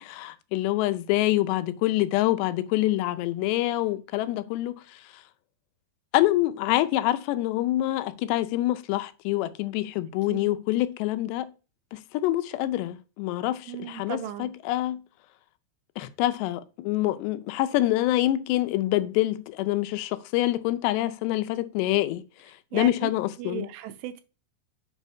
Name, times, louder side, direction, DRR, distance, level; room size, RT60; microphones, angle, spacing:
voice 1, 0.0-4.7 6.1-11.5 11.9-15.0 16.0-22.2 22.7-23.7, left 15 dB, 80° left, 2.6 m, -26 dB
voice 2, 13.7-14.5 22.7-23.1 23.4-24.2, right 11 dB, 80° right, 2.7 m, -36 dB
8.1 x 4.1 x 5.6 m
omnidirectional pair, 5.1 m